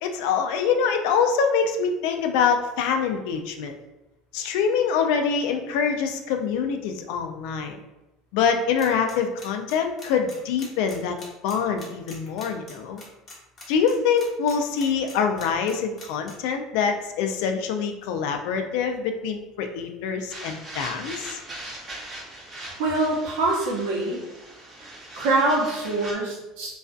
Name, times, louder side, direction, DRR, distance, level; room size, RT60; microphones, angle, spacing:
voice 1, 0.0-3.7 4.3-7.8 8.3-11.2 11.4-13.0 13.7-21.4, left 6 dB, 75° left, 5 dB, 0.3 m, -25 dB
sound 1, 8.8-16.3, left 2 dB, 25° left, 0.7 m, -43 dB
sound 2, 20.3-26.1, right 1 dB, 20° right, 0.6 m, -40 dB
voice 2, 22.8-24.2 24.8-26.8, right 2 dB, 80° right, -3 dB, 0.8 m, -25 dB
2.4 x 2.3 x 2.3 m, 0.98 s
cardioid pair, 140°, 0 cm